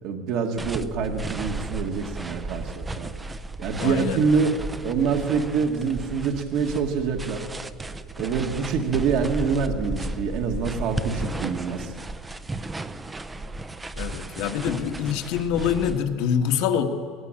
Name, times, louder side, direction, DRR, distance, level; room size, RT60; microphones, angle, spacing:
voice 1, 0.0-3.1 3.6-4.6 4.8-7.5 8.2-11.9, right 5 dB, 55° right, 3 dB, 1.7 m, -26 dB
sound 1, 0.6-16.0, right 2 dB, 10° right, 0.6 m, -34 dB
voice 2, 3.8-4.2 14.0-16.8, left 8 dB, 65° left, 4 dB, 1.8 m, -25 dB
22.5 x 18.0 x 9.0 m, 2.2 s
cardioid pair, 165°, 0 cm